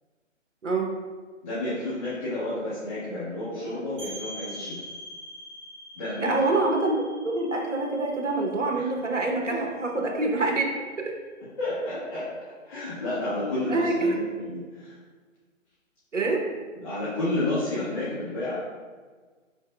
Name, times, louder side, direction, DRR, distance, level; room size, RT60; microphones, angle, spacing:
voice 1, 1.4-4.8 5.9-6.3 8.7-8.9 11.6-12.2 12.6-14.9 16.8-18.6, left 2 dB, 25° left, -12 dB, 1.3 m, -31 dB
sound 1, 4.0-9.5, equal, 25° right, 0.9 m, -43 dB
voice 2, 6.2-6.9 7.2-10.6 11.0-11.2 13.7-14.2 16.1-16.5, right 2 dB, 70° right, 1 dB, 1.0 m, -25 dB
4.7 x 4.5 x 2.3 m, 1.5 s
figure-of-eight pair, 145°, 38 cm